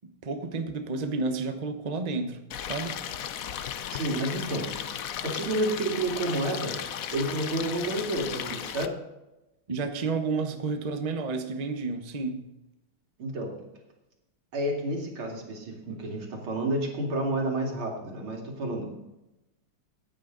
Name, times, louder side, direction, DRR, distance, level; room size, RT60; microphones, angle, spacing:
voice 1, 0.0-2.4 2.7-3.0 9.7-12.4, right 4 dB, 30° right, 6 dB, 0.7 m, -31 dB
Stream, 2.5-8.9, left 9 dB, 70° left, 0.8 m, -35 dB
voice 2, 3.9-4.7 5.2-6.8 7.1-9.0 13.2-13.5 14.5-18.9, right 1 dB, 90° right, 0 dB, 3.3 m, -30 dB
15.5 x 9.4 x 3.9 m, 0.97 s
omnidirectional pair, 2.3 m